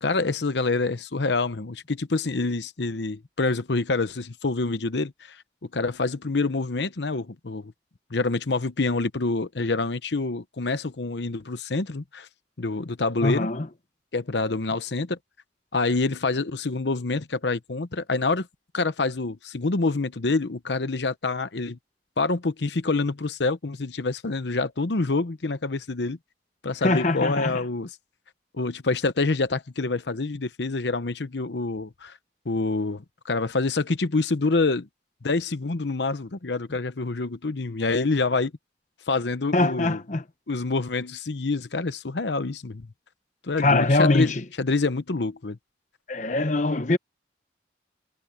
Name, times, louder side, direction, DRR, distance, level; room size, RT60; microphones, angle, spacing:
voice 1, 0.0-5.4 5.7-7.7 8.1-12.3 12.6-13.5 14.1-15.2 15.7-18.5 18.7-21.8 22.2-26.2 26.6-27.9 28.5-32.2 32.5-34.9 35.2-38.5 39.1-40.0 40.5-42.9 43.4-45.6, left 3 dB, 80° left, 0.9 m, -26 dB
voice 2, 13.2-13.7 26.8-27.6 39.5-40.2 43.6-44.4 46.1-47.0, left 2 dB, 40° left, 0.9 m, -22 dB
head